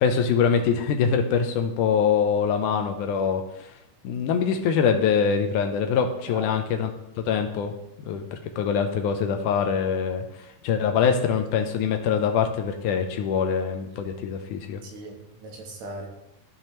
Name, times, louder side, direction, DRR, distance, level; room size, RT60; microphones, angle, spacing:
voice 1, 0.0-3.7 4.0-6.9 7.3-7.7 8.0-10.2 10.6-14.8, left 6 dB, 80° left, 6 dB, 2.1 m, -24 dB
voice 2, 6.3-6.6 14.8-16.1, right 2 dB, 65° right, 1 dB, 2.2 m, -39 dB
14.0 x 5.6 x 3.0 m, 0.86 s
omnidirectional pair, 3.8 m